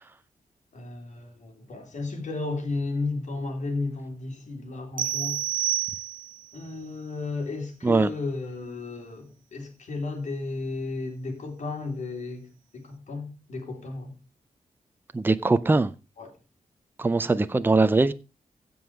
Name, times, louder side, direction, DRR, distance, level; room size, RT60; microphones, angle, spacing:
voice 1, 0.7-5.7 6.5-14.1 16.2-16.4, left 3 dB, 60° left, 3.4 m, -34 dB
sound 1, 5.0-6.5, right 12 dB, 90° right, 0.5 m, -29 dB
voice 2, 15.1-15.9 17.0-18.1, right 3 dB, 15° right, 0.5 m, -21 dB
16.0 x 5.5 x 4.7 m
wide cardioid pair, 145°, 14 cm